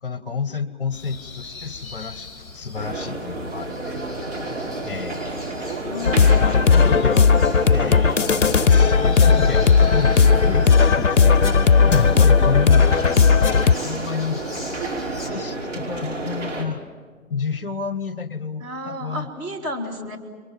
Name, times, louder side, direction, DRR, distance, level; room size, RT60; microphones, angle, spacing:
voice 1, 0.0-4.0 4.8-5.6 6.2-7.3 7.7-8.2 8.7-11.4 11.9-12.9 13.8-14.4 15.3-16.8 17.3-19.3, left 5 dB, 40° left, 14 dB, 1.2 m, -30 dB
sound 1, 0.9-15.3, left 3 dB, 15° left, 5.5 m, -41 dB
sound 2, 2.7-16.6, right 2 dB, 60° right, 5.6 m, -30 dB
voice 2, 5.8-7.4 12.1-12.4 18.6-20.2, left 1 dB, 15° right, -4 dB, 2.7 m, -33 dB
sound 3, 6.1-13.7, left 5 dB, 60° left, 0.7 m, -16 dB
29.0 x 23.5 x 7.5 m, 1.5 s
figure-of-eight pair, 150°, 42 cm